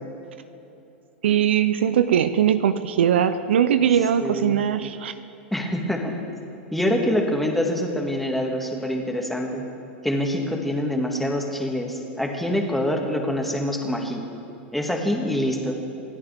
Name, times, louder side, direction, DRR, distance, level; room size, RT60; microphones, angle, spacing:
voice 1, 1.2-5.1, right 9 dB, 75° right, 12 dB, 0.6 m, -20 dB
voice 2, 4.2-4.6 5.5-6.1 6.7-9.6 10.0-14.2 14.7-15.7, left 1 dB, ahead, 1 dB, 2.1 m, -25 dB
27.0 x 10.0 x 3.6 m, 2.9 s
hypercardioid pair, 105°, 6 cm